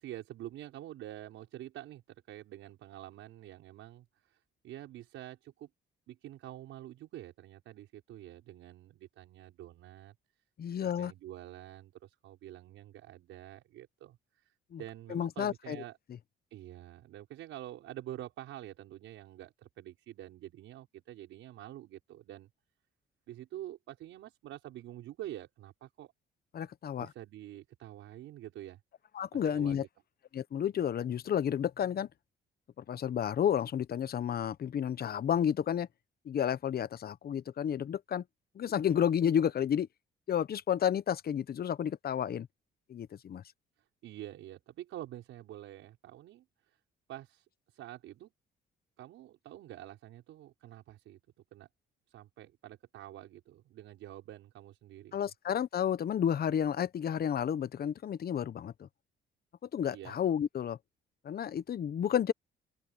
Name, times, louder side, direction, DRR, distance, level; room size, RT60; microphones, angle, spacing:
voice 1, 0.0-2.0 2.3-5.7 6.1-10.2 10.8-16.0 16.5-22.5 23.3-26.1 27.0-28.8 29.3-29.9 44.0-46.8 47.1-48.3 49.0-51.2 51.5-51.7 52.1-55.2 59.9-60.2, right 13 dB, 85° right, 5.6 m, -47 dB
voice 2, 10.6-11.1 14.7-14.8 15.1-15.8 26.5-27.1 29.1-29.8 30.3-32.1 32.8-35.9 36.2-38.2 38.5-39.9 40.3-42.5 42.9-43.4 55.1-58.9 59.7-60.8 61.2-62.3, left 9 dB, 50° left, 0.9 m, -31 dB
open air
cardioid pair, 90°, 20 cm